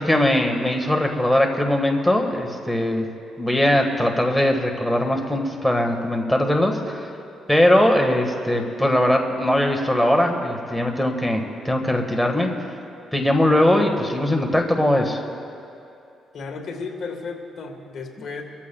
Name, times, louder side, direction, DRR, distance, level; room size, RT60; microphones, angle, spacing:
voice 1, 0.0-3.1 3.4-7.1 7.5-12.5 13.1-15.2, left 1 dB, ahead, 2 dB, 1.6 m, -20 dB
voice 2, 16.3-18.4, left 4 dB, 60° left, 3 dB, 1.5 m, -33 dB
23.5 x 14.5 x 2.3 m, 2.6 s
cardioid pair, 90°, 0 cm